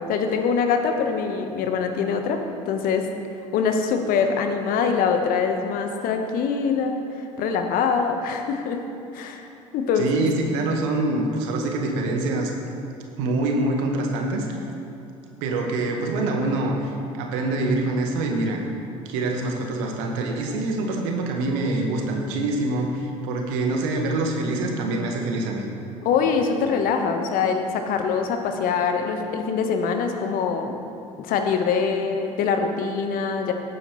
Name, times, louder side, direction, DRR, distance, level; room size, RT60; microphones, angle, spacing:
voice 1, 0.0-3.1 3.5-8.8 9.1-9.5 9.7-10.2 26.0-30.8 31.2-33.5, left 5 dB, 55° left, 5 dB, 1.2 m, -24 dB
voice 2, 10.0-12.5 13.2-14.6 15.4-18.6 19.0-25.7, right 2 dB, 65° right, 2 dB, 1.6 m, -25 dB
16.5 x 9.3 x 3.2 m, 2.7 s
figure-of-eight pair, 60°, 17 cm